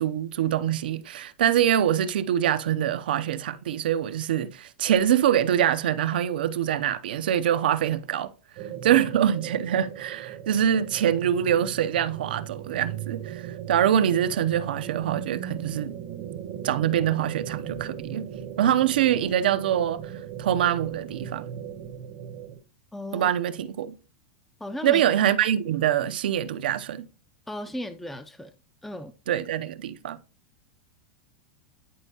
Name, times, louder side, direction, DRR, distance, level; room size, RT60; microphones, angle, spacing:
voice 1, 0.0-8.3 8.8-15.9 16.6-18.3 18.6-20.1 20.4-21.5 23.1-24.0 24.8-27.1 29.3-30.2, right 10 dB, 85° right, 0.6 m, -24 dB
sound 1, 8.6-22.6, right 9 dB, 50° right, 0.8 m, -38 dB
voice 2, 22.9-23.3 24.6-25.0 27.5-28.5 28.8-29.1, left 1 dB, 5° left, 0.4 m, -35 dB
10.0 x 4.4 x 2.8 m
supercardioid pair, 145°, 5 cm